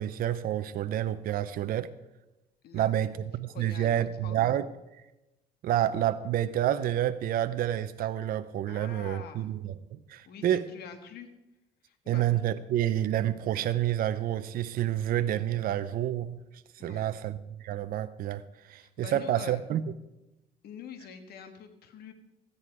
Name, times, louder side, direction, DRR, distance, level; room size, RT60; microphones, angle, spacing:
voice 1, 0.0-1.9 2.7-4.7 5.6-10.6 12.1-16.4 16.8-18.4 18.7-19.8, right 12 dB, 60° right, 11 dB, 0.6 m, -29 dB
voice 2, 2.6-4.4 8.7-9.5 10.2-11.3 11.8-12.2 16.8-17.1 18.8-19.6 20.6-22.1, left 7 dB, 70° left, 7 dB, 1.5 m, -46 dB
13.5 x 9.8 x 4.8 m, 0.95 s
cardioid pair, 110°, 17 cm